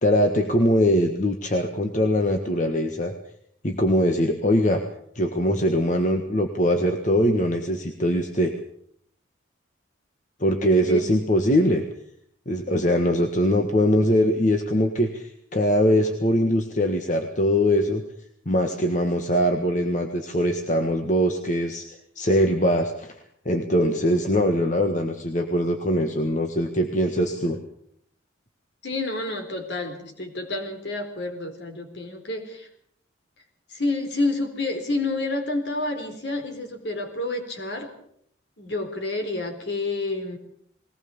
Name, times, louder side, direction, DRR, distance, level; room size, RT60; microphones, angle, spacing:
voice 1, 0.0-3.1 3.6-4.8 5.1-8.5 10.4-11.8 12.4-18.0 18.4-21.8 22.1-23.1 23.4-27.6, equal, 40° left, 4 dB, 1.6 m, -22 dB
voice 2, 28.8-32.7 33.7-37.9 38.6-40.4, left 2 dB, 60° left, 5 dB, 4.2 m, -29 dB
21.0 x 18.5 x 7.2 m, 0.68 s
head